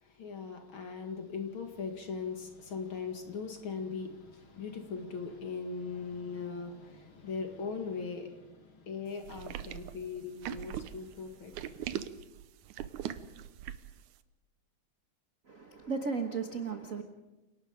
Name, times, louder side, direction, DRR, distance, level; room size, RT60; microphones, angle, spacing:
voice 1, 0.0-11.9, left 5 dB, 45° left, 2.5 m, -40 dB
sound 1, 9.3-14.0, right 11 dB, 85° right, 2.3 m, -40 dB
voice 2, 15.5-17.0, right 5 dB, 50° right, 1.0 m, -35 dB
29.0 x 18.5 x 5.2 m
omnidirectional pair, 3.4 m